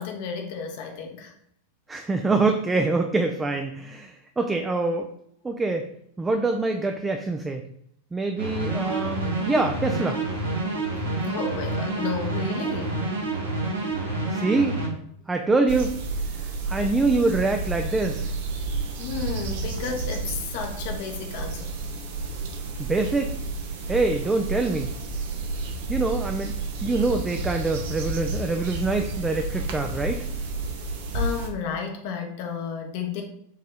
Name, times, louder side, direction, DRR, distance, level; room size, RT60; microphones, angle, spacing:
voice 1, 0.0-1.3 11.2-13.1 19.0-21.7 31.1-33.2, left 6 dB, 50° left, 3 dB, 0.7 m, -32 dB
voice 2, 1.9-5.1 5.4-5.9 6.2-7.6 8.1-10.2 14.3-14.8 15.3-16.0 16.7-18.3 22.8-23.3 23.9-24.9 25.9-26.5 26.8-30.2, right 3 dB, 10° right, 5 dB, 0.4 m, -25 dB
sound 1, 8.4-14.9, right 2 dB, 70° right, 1.2 m, -28 dB
sound 2, 15.7-31.5, right 3 dB, 55° right, 0.7 m, -31 dB
4.5 x 3.0 x 3.7 m, 0.70 s
figure-of-eight pair, 90°, 0 cm